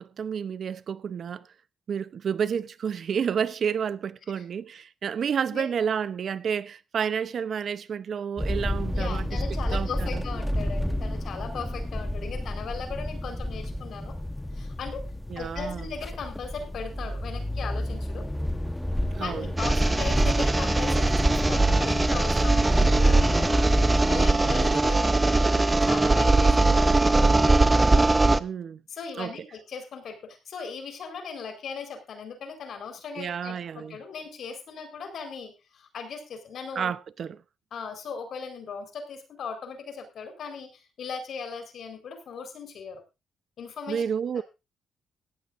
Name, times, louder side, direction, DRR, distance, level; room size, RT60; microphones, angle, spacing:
voice 1, 0.0-1.5 1.9-10.2 15.3-15.9 19.1-19.5 28.4-28.8 29.2-29.3 33.2-34.0 36.7-37.4 43.9-44.4, right 7 dB, 60° right, 0.8 m, -30 dB
sound 1, 8.4-24.0, left 1 dB, 5° left, 1.2 m, -30 dB
voice 2, 8.9-14.2 14.5-15.0 15.4-18.2 19.2-23.6 24.1-27.6 28.9-36.9 37.7-43.0 43.6-44.0, left 5 dB, 70° left, 4.5 m, -38 dB
sound 2, 19.6-28.4, right 2 dB, 20° right, 0.8 m, -21 dB
17.5 x 15.0 x 2.6 m
cardioid pair, 80°, 0 cm